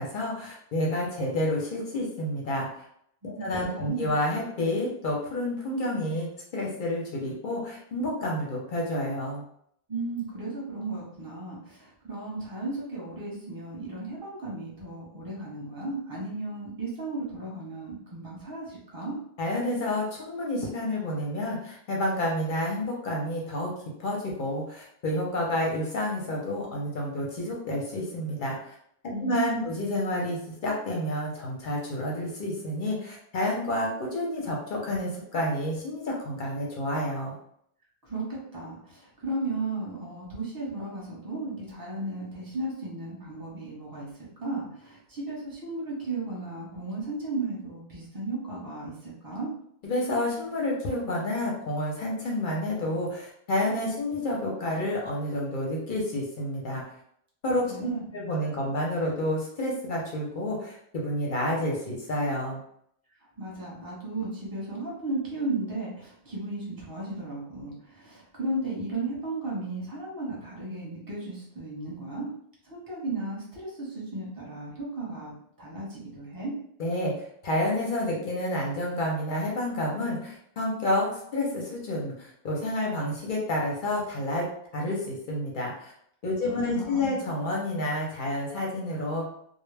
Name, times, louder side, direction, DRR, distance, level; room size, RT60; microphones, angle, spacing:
voice 1, 0.0-2.9 3.2-9.4 19.4-23.7 24.0-28.7 29.2-37.4 49.8-56.8 57.4-62.6 76.8-77.1 77.4-84.5 84.7-85.9 86.2-89.3, left 1 dB, 55° left, -2 dB, 0.7 m, -29 dB
voice 2, 3.2-4.1 9.9-19.2 29.1-29.7 38.0-44.1 44.4-49.5 57.7-58.1 63.4-72.3 72.6-76.5 86.4-87.2, right 2 dB, 20° right, -5 dB, 0.8 m, -35 dB
2.1 x 2.1 x 3.2 m, 0.69 s
omnidirectional pair, 1.2 m